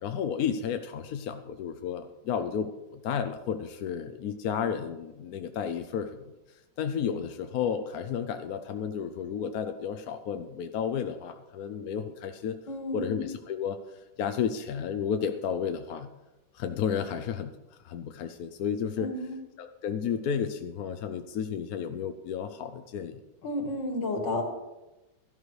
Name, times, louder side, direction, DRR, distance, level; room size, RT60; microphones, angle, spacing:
voice 1, 0.0-6.2 6.8-12.5 12.9-16.1 16.5-17.5 17.8-19.1 19.6-23.2, left 7 dB, 65° left, 8 dB, 1.0 m, -32 dB
voice 2, 12.7-13.1 19.0-19.4 23.4-24.4, left 1 dB, 85° left, 3 dB, 2.5 m, -31 dB
16.5 x 13.0 x 3.2 m, 1.0 s
omnidirectional pair, 1.9 m